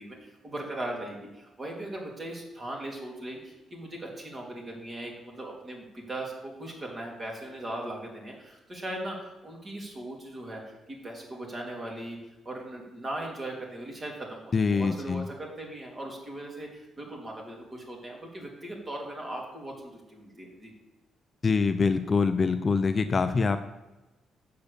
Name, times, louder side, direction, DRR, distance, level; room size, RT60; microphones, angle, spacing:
voice 1, 0.0-10.6 10.9-12.2 12.4-20.7, right 1 dB, 30° right, -1 dB, 3.1 m, -39 dB
voice 2, 14.5-15.2 21.4-23.6, left 4 dB, 35° left, 9 dB, 0.6 m, -24 dB
8.1 x 6.8 x 6.8 m, 1.0 s
cardioid pair, 90°, 0 cm